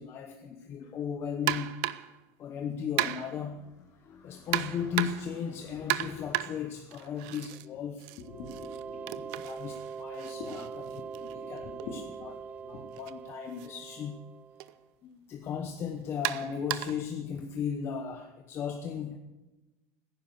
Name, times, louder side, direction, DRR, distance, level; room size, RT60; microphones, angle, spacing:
voice 1, 0.0-1.8 2.4-8.1 9.4-12.3 12.6-14.2 15.0-19.2, left 7 dB, 35° left, 1.0 m, -36 dB
sound 1, 1.5-2.2 3.0-3.5 4.5-5.4 5.9-7.7 8.0-11.9 12.9-13.1 13.6-13.7 14.6-14.7 16.2-17.1, right 16 dB, 65° right, 0.7 m, -34 dB
voice 2, 8.2-9.3 9.7-9.8 10.2-12.3 12.7-12.8, left 4 dB, 50° left, 3.3 m, -45 dB
sound 2, 8.2-14.8, right 6 dB, 20° right, 0.5 m, -42 dB
16.5 x 10.0 x 7.1 m
cardioid pair, 155°, 7 cm